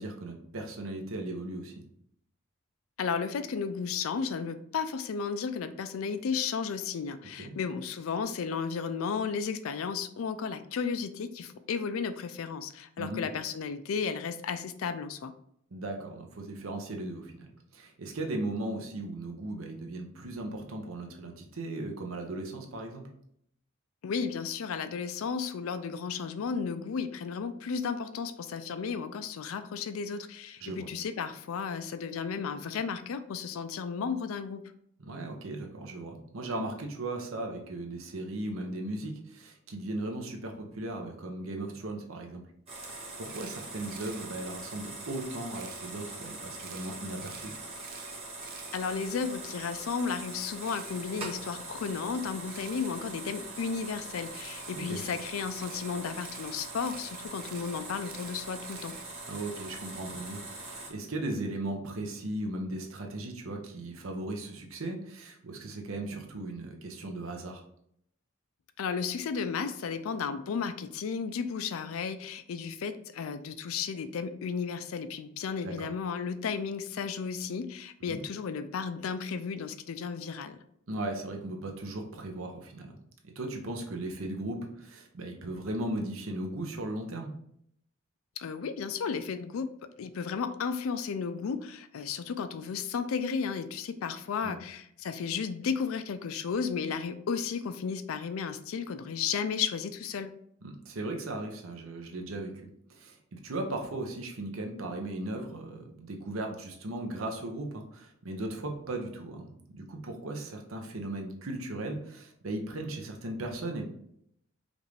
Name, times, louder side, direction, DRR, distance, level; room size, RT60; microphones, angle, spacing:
voice 1, 0.0-1.7 7.4-7.5 13.0-13.2 15.7-23.1 30.6-30.9 35.0-42.4 42.9-47.5 54.7-55.0 59.3-67.6 75.6-75.9 78.1-78.2 80.9-82.9 83.2-87.3 94.4-94.6 100.6-102.5 102.9-113.9, right 2 dB, 75° right, 3 dB, 0.8 m, -37 dB
voice 2, 3.0-15.3 24.0-34.6 48.7-58.9 68.8-80.6 88.4-89.7 90.0-100.3, left 6 dB, 80° left, 11 dB, 0.4 m, -34 dB
sound 1, 42.7-60.9, right 2 dB, 30° right, 1.4 m, -42 dB
Camera, 43.3-44.3 45.5-45.9 46.6-49.4 50.6-51.0 52.5-52.9 54.3-59.3, right 9 dB, 45° right, 0.3 m, -51 dB
5.2 x 2.5 x 3.2 m, 0.72 s
head